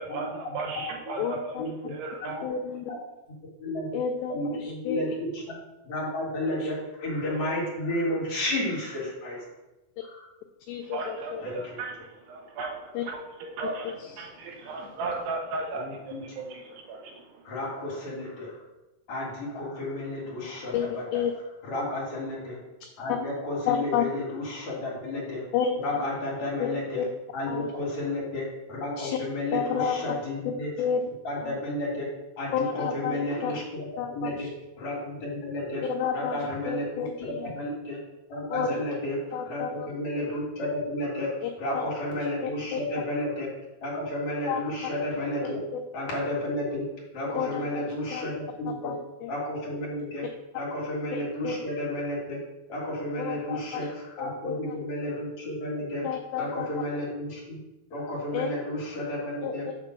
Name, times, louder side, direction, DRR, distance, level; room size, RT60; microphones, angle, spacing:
voice 1, 0.0-1.6 1.8-2.4 10.8-17.5, right 3 dB, 80° right, 1 dB, 3.1 m, -36 dB
voice 2, 1.2-1.6 2.4-2.9 3.9-5.0 10.7-11.4 13.0-13.1 13.8-14.1 20.7-21.3 23.1-23.2 23.7-24.0 25.5-26.0 26.6-27.1 27.5-27.7 29.0-29.2 29.5-29.9 30.8-31.0 31.4-31.6 32.5-33.5 34.0-34.5 35.9-37.5 38.5-38.8 39.3-39.9 41.4-41.9 42.4-42.8 44.5-44.6 45.4-45.8 47.3-48.3 48.7-49.3 51.1-51.6 53.2-53.9 54.2-54.8 56.0-56.7 58.3-58.5 59.4-59.5, left 7 dB, 90° left, 5 dB, 2.1 m, -31 dB
voice 3, 3.6-4.0 4.3-5.6 5.8-9.4 10.1-10.2 11.4-11.5 15.8-16.2 17.4-18.5 19.1-21.2 21.6-22.6 23.0-25.4 25.8-27.0 27.3-30.7 31.2-32.1 32.4-33.9 34.1-34.5 34.8-35.8 36.1-38.0 38.3-39.2 39.5-43.5 43.8-45.6 45.9-46.9 47.1-48.9 49.3-50.3 50.5-52.4 52.7-56.1 56.4-57.4 57.9-59.7, left 1 dB, 50° left, -5 dB, 2.8 m, -32 dB
7.5 x 3.7 x 6.0 m, 0.99 s
omnidirectional pair, 4.8 m